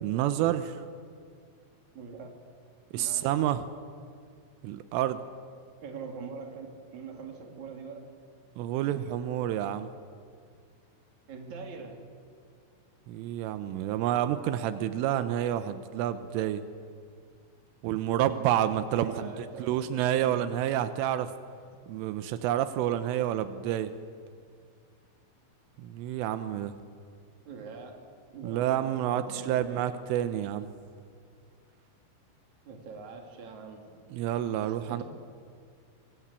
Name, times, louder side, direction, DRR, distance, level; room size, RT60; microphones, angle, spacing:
voice 1, 0.0-0.9 2.9-3.6 4.6-5.2 8.6-9.9 13.1-16.6 17.8-21.3 21.9-23.9 25.8-26.8 28.4-30.7 34.1-35.0, right 11 dB, 85° right, 11 dB, 3.4 m, -29 dB
voice 2, 1.9-2.3 2.9-3.3 5.8-6.7 6.9-8.1 11.3-12.0 19.0-20.4 27.5-28.0 28.3-30.0 32.7-33.9 34.6-35.0, right 5 dB, 40° right, 2 dB, 3.9 m, -43 dB
24.5 x 24.0 x 8.4 m, 2.2 s
omnidirectional pair, 5.8 m